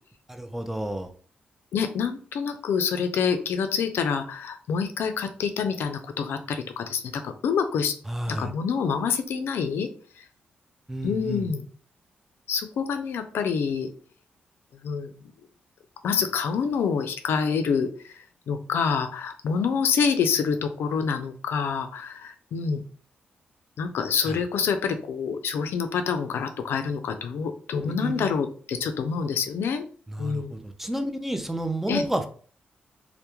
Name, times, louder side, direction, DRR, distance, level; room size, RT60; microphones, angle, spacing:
voice 1, 0.3-1.1 8.1-8.5 10.9-11.5 24.3-24.4 27.8-28.3 30.1-32.3, right 1 dB, 5° right, 6 dB, 0.3 m, -30 dB
voice 2, 1.7-7.9 8.3-9.9 10.2-10.3 11.0-11.6 12.5-13.9 14.8-15.1 16.0-18.1 18.5-22.8 23.8-29.8 30.2-30.6 31.9-32.1, left 6 dB, 75° left, 8 dB, 0.3 m, -27 dB
2.2 x 2.0 x 2.9 m, 0.43 s
cardioid pair, 100°, 4 cm